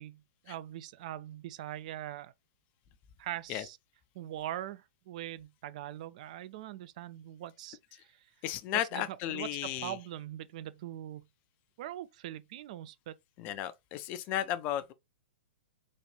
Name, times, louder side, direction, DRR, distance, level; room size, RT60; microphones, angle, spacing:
voice 1, 0.0-2.3 3.2-3.8 4.1-8.3 8.9-11.2 11.8-13.2, right 12 dB, 45° right, 0.4 m, -42 dB
voice 2, 8.4-10.0 13.4-14.9, left 12 dB, 30° left, 0.4 m, -34 dB
4.1 x 2.4 x 3.2 m
figure-of-eight pair, 105°, 5 cm